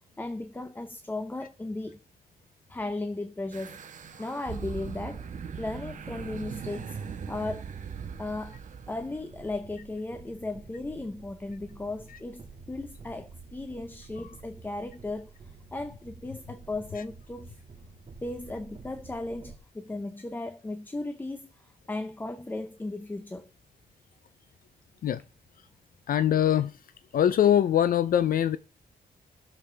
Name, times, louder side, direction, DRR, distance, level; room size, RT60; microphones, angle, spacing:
voice 1, 0.2-2.0 2.7-3.8 4.2-5.2 5.6-7.7 8.2-8.6 8.9-15.3 15.7-17.5 18.2-21.5 21.9-23.5, left 2 dB, 10° left, 0.5 m, -36 dB
sound 1, 3.5-9.5, right 6 dB, 50° right, 1.2 m, -40 dB
sound 2, 9.3-19.6, right 4 dB, 35° right, 2.0 m, -50 dB
voice 2, 26.1-26.7 27.1-28.6, left 10 dB, 60° left, 0.5 m, -22 dB
17.5 x 6.9 x 3.3 m
wide cardioid pair, 150°, 16 cm